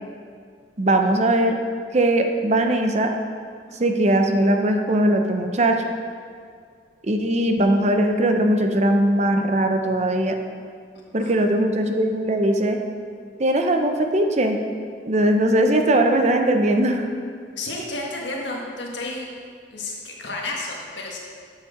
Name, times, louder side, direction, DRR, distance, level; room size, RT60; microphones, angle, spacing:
voice 1, 0.8-1.6 1.9-3.1 3.8-5.8 7.1-10.4 11.1-12.8 13.4-14.6 15.1-17.1, right 1 dB, 40° right, 5 dB, 0.7 m, -20 dB
voice 2, 17.6-19.3 19.7-21.2, left 2 dB, 90° left, -2 dB, 1.5 m, -32 dB
7.5 x 7.2 x 5.1 m, 2.1 s
head